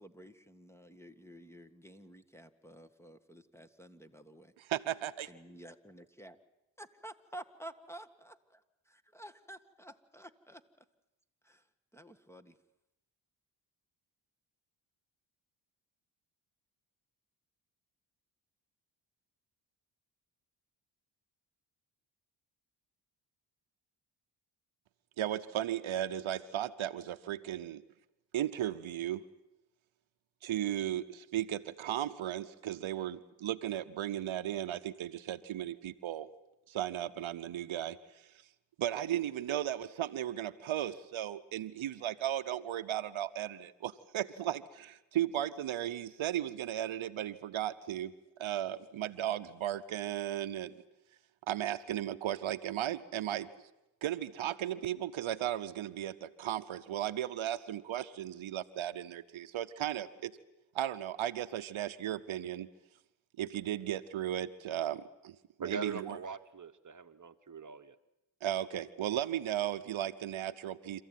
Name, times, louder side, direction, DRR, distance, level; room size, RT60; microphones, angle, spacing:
voice 1, 0.0-4.5 5.3-6.4 6.8-10.6 11.4-11.7 11.9-12.6, right 1 dB, 5° left, 9 dB, 1.7 m, -51 dB
voice 2, 4.6-5.3 25.2-27.8 28.3-29.2 30.4-36.3 36.7-38.2 38.8-48.1 48.4-50.7 51.5-53.5 54.0-60.3 60.7-62.7 63.4-66.2 68.4-71.0, right 11 dB, 75° right, 12 dB, 0.9 m, -36 dB
voice 3, 65.6-68.0, right 5 dB, 40° right, 11 dB, 1.3 m, -41 dB
27.0 x 15.0 x 9.3 m, 0.94 s
cardioid pair, 60°, 49 cm